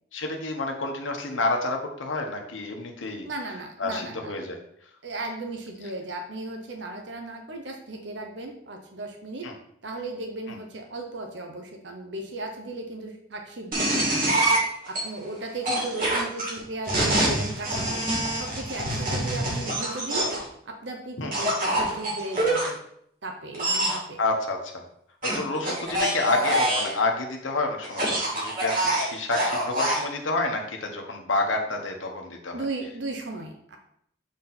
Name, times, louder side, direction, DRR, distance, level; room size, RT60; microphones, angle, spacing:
voice 1, 0.1-3.2 3.8-4.6 9.4-9.5 15.6-15.7 21.2-21.3 24.2-24.8 25.2-32.7, left 2 dB, 80° left, 2 dB, 1.2 m, -29 dB
voice 2, 3.2-4.3 5.0-9.5 9.8-14.3 14.9-18.0 18.3-20.4 20.7-22.8 23.2-24.2 32.5-33.8, right 2 dB, 65° right, 3 dB, 0.9 m, -36 dB
sound 1, 13.7-15.0 15.6-20.5 21.3-22.7 23.5-24.0 25.2-26.9 27.8-30.0, right 1 dB, 45° right, 2.6 m, -25 dB
7.3 x 4.1 x 4.3 m, 0.68 s
head